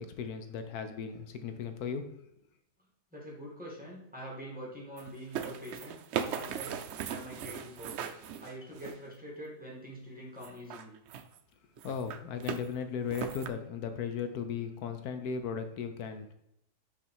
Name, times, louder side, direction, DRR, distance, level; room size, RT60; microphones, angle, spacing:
voice 1, 0.0-2.1 11.8-16.3, left 6 dB, 70° left, 8 dB, 1.1 m, -36 dB
voice 2, 3.1-6.8 7.1-11.0 14.5-14.6, equal, 5° right, -4 dB, 2.1 m, -45 dB
sound 1, 5.0-9.1 10.4-11.4 11.8-12.7 13.1-13.5, right 8 dB, 80° right, 0.6 m, -38 dB
5.6 x 4.8 x 4.5 m, 0.78 s
omnidirectional pair, 1.7 m